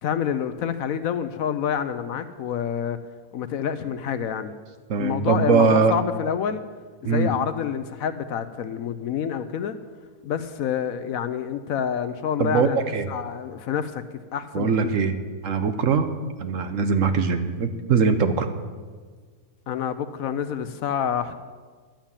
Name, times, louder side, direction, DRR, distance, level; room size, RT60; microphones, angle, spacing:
voice 1, 0.0-3.0 3.3-4.5 5.0-6.6 7.0-9.8 10.2-12.8 13.1-14.0 14.3-15.0 19.7-21.4, left 8 dB, 70° left, 11 dB, 1.0 m, -27 dB
voice 2, 4.9-6.0 7.0-7.3 12.4-13.1 14.5-15.2 15.4-16.1 16.4-18.5, right 5 dB, 60° right, 8 dB, 1.1 m, -21 dB
11.5 x 8.9 x 7.3 m, 1.5 s
omnidirectional pair, 1.7 m